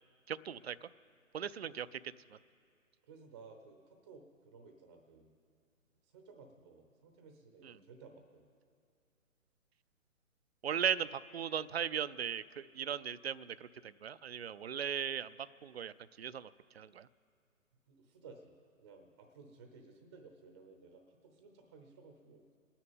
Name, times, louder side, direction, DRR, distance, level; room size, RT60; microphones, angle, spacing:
voice 1, 0.3-0.9 1.3-2.0 2.3-2.4 7.6-7.7 10.6-15.3 15.6-17.1, right 8 dB, 50° right, 16 dB, 0.4 m, -38 dB
voice 2, 3.0-5.3 6.0-8.4 17.9-18.5 18.8-22.4, right 4 dB, 20° right, 5 dB, 0.7 m, -57 dB
27.5 x 9.9 x 5.3 m, 2.3 s
figure-of-eight pair, 140°, 42 cm